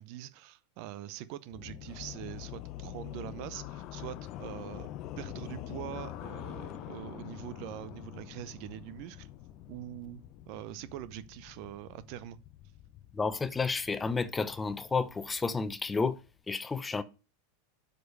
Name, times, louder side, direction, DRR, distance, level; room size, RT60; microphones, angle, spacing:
voice 1, 0.0-4.9 5.2-9.3 9.7-10.2 10.5-12.4, right 13 dB, 55° right, 0.7 m, -43 dB
sound 1, 1.5-16.4, left 13 dB, 45° left, 0.7 m, -45 dB
voice 2, 13.1-16.2 16.5-17.0, left 4 dB, 15° left, 0.8 m, -31 dB
7.8 x 5.2 x 6.6 m
hypercardioid pair, 90°, 0 cm